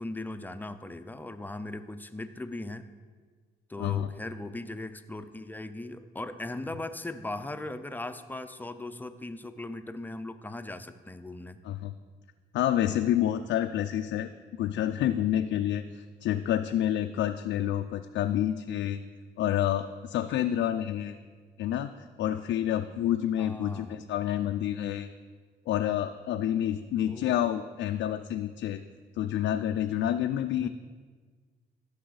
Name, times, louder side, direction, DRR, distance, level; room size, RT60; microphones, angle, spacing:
voice 1, 0.0-2.8 3.7-11.6 17.6-17.9 23.4-24.0 27.0-27.4 30.6-30.7, left 2 dB, 10° left, 10 dB, 0.5 m, -39 dB
voice 2, 12.5-14.3 14.6-19.0 19.4-21.2 21.6-21.9 22.2-25.1 25.7-28.8 29.2-30.7, left 11 dB, 75° left, 6 dB, 0.4 m, -28 dB
13.5 x 5.6 x 4.0 m, 1.5 s
cardioid pair, 90°, 20 cm